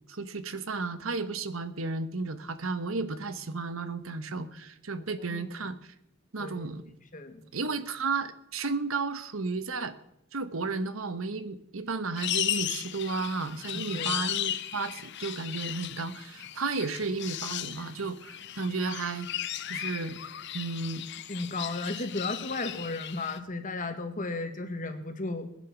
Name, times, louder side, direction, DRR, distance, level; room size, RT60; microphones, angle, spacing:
voice 1, 0.1-5.9 6.3-6.9 7.5-9.9 10.3-19.3 19.6-20.2 20.5-21.0, right 4 dB, 80° right, 11 dB, 1.2 m, -33 dB
voice 2, 5.0-5.5 6.4-6.7 7.1-7.4 13.7-14.2 21.3-25.5, left 2 dB, 40° left, 7 dB, 1.8 m, -35 dB
sound 1, 12.2-23.4, left 12 dB, 55° left, 0.7 m, -36 dB
19.5 x 10.5 x 6.1 m, 0.79 s
head